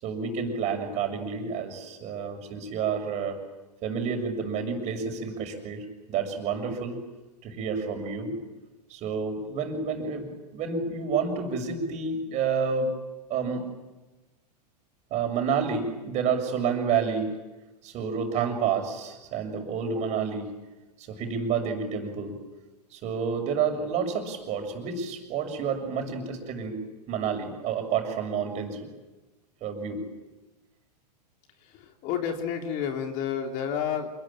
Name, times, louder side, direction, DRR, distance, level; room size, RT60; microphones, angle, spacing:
voice 1, 0.0-3.4 3.8-7.0 7.4-8.4 8.9-12.9 13.3-13.7 15.1-17.3 17.8-20.5 21.0-22.4 22.9-26.8 27.1-28.8 29.6-30.0, right 6 dB, 30° right, 5 dB, 6.8 m, -29 dB
voice 2, 32.0-34.1, left 8 dB, 40° left, 4 dB, 3.5 m, -29 dB
28.5 x 21.0 x 9.0 m, 1.1 s
figure-of-eight pair, 100°, 21 cm